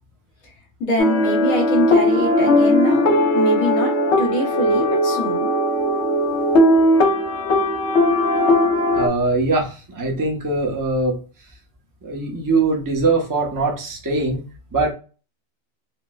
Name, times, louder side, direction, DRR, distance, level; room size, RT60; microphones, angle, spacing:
voice 1, 0.8-5.5, left 1 dB, 85° left, 0 dB, 1.4 m, -24 dB
sound 1, 1.0-9.1, left 1 dB, 60° left, 0.9 m, -18 dB
voice 2, 8.9-11.2 12.0-14.9, right 3 dB, 20° right, 0 dB, 0.5 m, -22 dB
4.3 x 2.0 x 2.2 m, 0.35 s
omnidirectional pair, 1.4 m